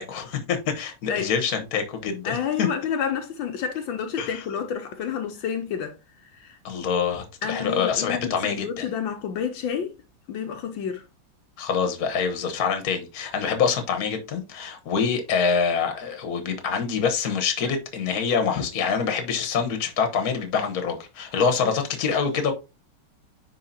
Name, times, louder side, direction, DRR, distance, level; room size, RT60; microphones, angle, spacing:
voice 1, 0.0-2.7 4.2-4.4 6.6-8.9 11.6-22.5, left 6 dB, 55° left, 1.5 m, -25 dB
voice 2, 2.2-5.9 6.4-6.6 7.4-9.9 10.3-11.0 21.6-21.7, left 7 dB, 75° left, 1.6 m, -29 dB
10.0 x 3.8 x 2.7 m
omnidirectional pair, 2.1 m